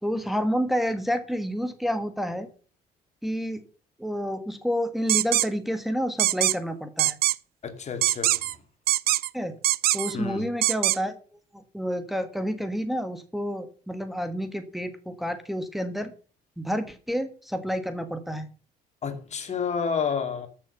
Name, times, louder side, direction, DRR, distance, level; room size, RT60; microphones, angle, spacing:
voice 1, 0.0-2.5 3.2-3.6 4.0-7.2 9.3-9.5 9.9-11.2 11.5-16.1 16.6-18.5, equal, ahead, 1.4 m, -29 dB
sound 1, 5.1-5.5 6.2-6.6 7.0-7.4 8.0-8.5 8.9-9.3 9.6-10.1 10.6-11.0, right 15 dB, 65° right, 0.5 m, -22 dB
voice 2, 7.6-8.6 10.1-10.4 19.0-20.5, left 6 dB, 40° left, 2.5 m, -30 dB
13.0 x 6.7 x 5.6 m
cardioid pair, 110°, 17 cm